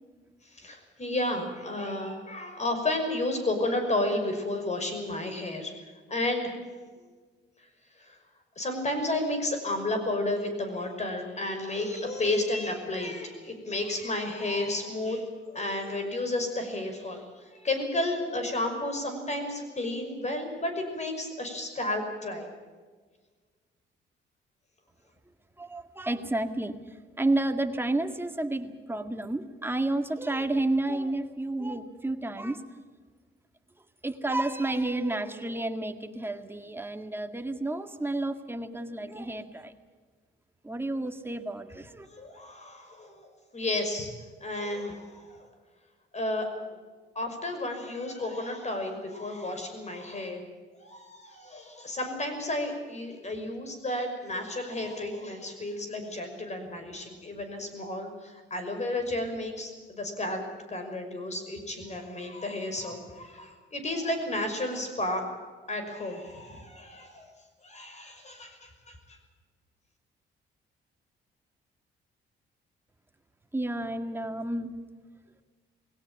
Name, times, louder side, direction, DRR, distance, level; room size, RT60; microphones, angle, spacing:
voice 1, 0.5-5.7 6.1-6.6 8.0-8.2 8.6-22.5 42.1-43.3 43.5-44.1 44.4-45.5 46.1-46.8 47.2-50.4 50.8-65.3 65.7-67.3 67.6-69.2, left 1 dB, 35° left, 6 dB, 5.8 m, -32 dB
voice 2, 25.6-32.6 34.0-39.7 40.6-42.1 73.5-74.7, right 2 dB, 10° right, 6 dB, 2.0 m, -31 dB
20.5 x 17.5 x 8.9 m, 1.5 s
cardioid pair, 90°, 20 cm